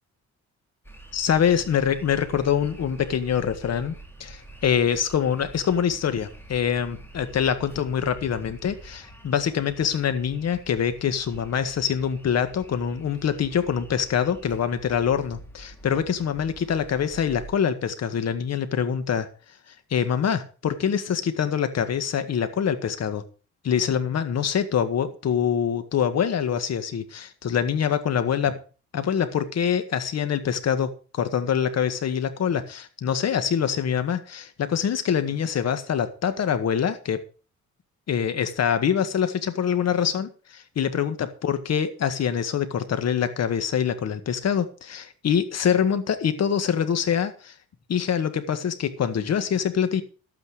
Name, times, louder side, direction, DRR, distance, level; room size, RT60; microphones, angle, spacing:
sound 1, 0.8-17.5, right 1 dB, 5° left, 2.9 m, -46 dB
voice 1, 1.1-3.9 4.2-19.3 19.9-23.2 23.6-28.6 28.9-37.2 38.1-47.5 47.9-50.0, left 8 dB, 60° left, 10 dB, 1.8 m, -25 dB
11.5 x 8.9 x 5.0 m, 0.36 s
cardioid pair, 90°, 30 cm